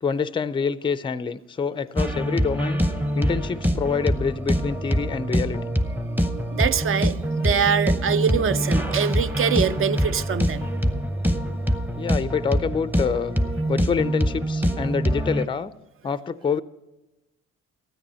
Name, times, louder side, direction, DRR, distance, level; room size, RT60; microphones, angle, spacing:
voice 1, 0.0-2.8 3.2-5.6 12.0-13.4 13.7-15.7 16.0-16.6, left 6 dB, 15° left, 0.4 m, -26 dB
sound 1, 2.0-15.4, equal, 5° right, 0.7 m, -24 dB
voice 2, 6.5-10.7, right 7 dB, 45° right, 0.5 m, -24 dB
13.5 x 9.4 x 5.6 m
cardioid pair, 90°, 30 cm